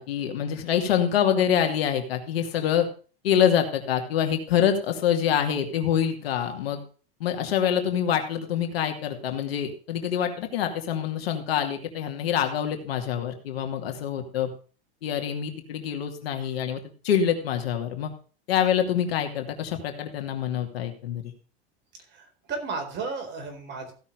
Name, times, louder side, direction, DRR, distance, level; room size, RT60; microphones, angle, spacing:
voice 1, 0.0-2.9 3.2-6.8 7.2-14.5 15.0-18.1 18.5-21.3, left 9 dB, 80° left, 5 dB, 2.4 m, -26 dB
voice 2, 22.1-23.9, right 4 dB, 35° right, 5 dB, 4.2 m, -34 dB
15.5 x 6.0 x 5.1 m, 0.38 s
supercardioid pair, 115°, 30 cm